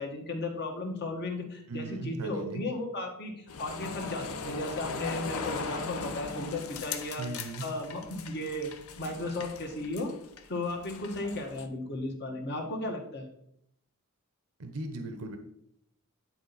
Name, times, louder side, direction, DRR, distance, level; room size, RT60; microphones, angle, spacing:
voice 1, 0.0-3.3 3.6-7.2 7.6-8.7 9.0-10.1 10.5-13.3, left 2 dB, 50° left, 2 dB, 1.5 m, -35 dB
voice 2, 1.7-2.6 7.2-7.7 14.6-15.4, right 2 dB, 80° right, 7 dB, 0.7 m, -37 dB
sound 1, 3.5-11.7, left 4 dB, 70° left, 0.7 m, -39 dB
9.9 x 4.5 x 4.0 m, 0.73 s
head